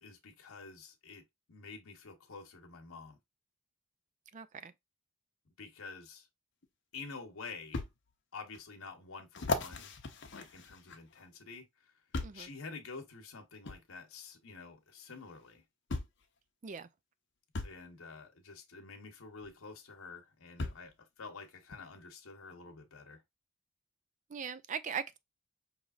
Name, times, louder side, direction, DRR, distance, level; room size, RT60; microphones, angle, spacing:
voice 1, 0.0-1.2 1.5-3.2 5.6-6.3 6.9-7.8 8.3-9.9 10.3-11.9 12.3-15.6 17.6-23.2, left 4 dB, 85° left, 1.0 m, -49 dB
voice 2, 4.3-4.7 12.2-12.5 16.6-16.9 24.3-25.2, right 6 dB, 35° right, 0.4 m, -40 dB
sound 1, 6.6-6.7 7.7-7.9 8.5-8.6 9.3-11.2 12.1-12.5 13.6-13.8 15.1-15.2 15.9-16.2 17.5-17.8 19.4-19.5 20.6-20.9 21.7-21.8, left 3 dB, 60° left, 0.7 m, -37 dB
5.0 x 3.2 x 2.4 m
head